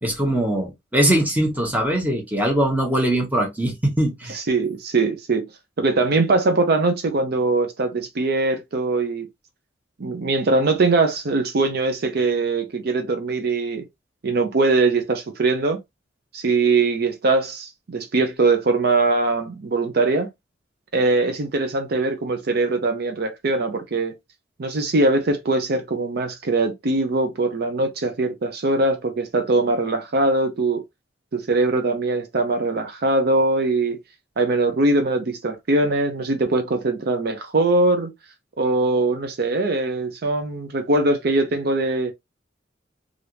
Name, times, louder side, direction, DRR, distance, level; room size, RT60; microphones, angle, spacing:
voice 1, 0.0-4.4, right 1 dB, 10° right, 1.0 m, -21 dB
voice 2, 4.3-5.5 5.8-9.3 10.0-13.8 14.2-15.8 16.3-20.3 20.9-24.1 24.6-30.8 31.3-34.0 34.4-38.1 38.6-42.1, right 3 dB, 60° right, 0.6 m, -21 dB
3.3 x 2.5 x 2.8 m
head